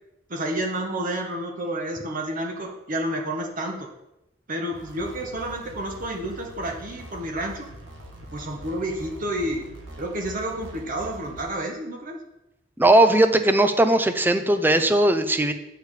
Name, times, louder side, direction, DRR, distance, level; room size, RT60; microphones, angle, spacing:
voice 1, 0.3-3.9 4.5-7.7 8.3-9.7 10.0-12.2, right 1 dB, 45° right, 2 dB, 1.3 m, -30 dB
sound 1, 4.7-11.4, right 1 dB, 75° right, 1.6 m, -43 dB
voice 2, 12.8-15.5, right 1 dB, 10° right, 9 dB, 0.5 m, -18 dB
8.3 x 6.6 x 4.8 m, 0.89 s
head